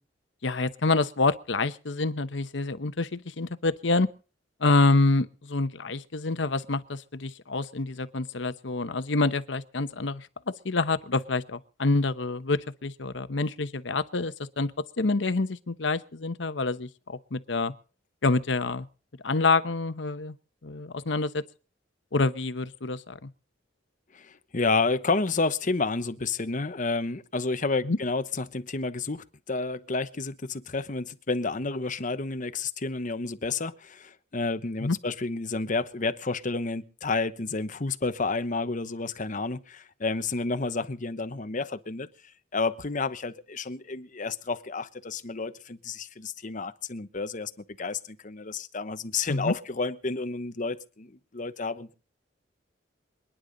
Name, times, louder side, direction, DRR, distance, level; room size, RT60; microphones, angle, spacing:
voice 1, 0.4-4.1 4.6-14.7 15.0-17.7 18.2-18.9 19.2-20.4 20.6-21.4 22.1-23.3 27.8-28.0 34.8-35.0 49.3-49.5, left 3 dB, 75° left, 0.9 m, -27 dB
voice 2, 24.1-42.1 42.5-47.5 47.8-51.9, left 3 dB, 45° left, 1.0 m, -30 dB
27.0 x 10.0 x 3.9 m
head